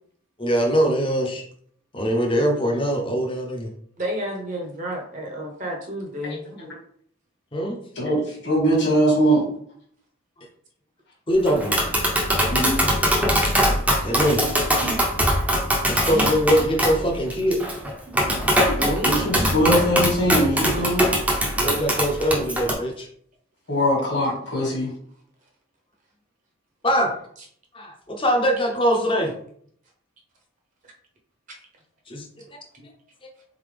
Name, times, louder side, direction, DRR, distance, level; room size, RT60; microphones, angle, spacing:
voice 1, 0.4-1.4 1.9-3.7 7.5-7.8 11.3-11.8 14.0-14.4 15.9-17.6 21.5-23.1 26.8-27.1 27.7-29.3 32.1-32.3 32.8-32.9, equal, 25° left, 2 dB, 0.8 m, -22 dB
voice 2, 4.0-6.4 14.1-14.2 14.8-15.0 16.1-16.2 18.8-19.5 31.5-31.6, right 1 dB, 35° right, 1 dB, 0.9 m, -30 dB
voice 3, 8.0-9.5 12.5-12.8 19.0-21.0 23.7-24.9, equal, 55° left, -3 dB, 1.9 m, -21 dB
Tap, 11.5-22.7, equal, 5° right, 0.7 m, -22 dB
4.0 x 3.8 x 3.4 m, 0.63 s
head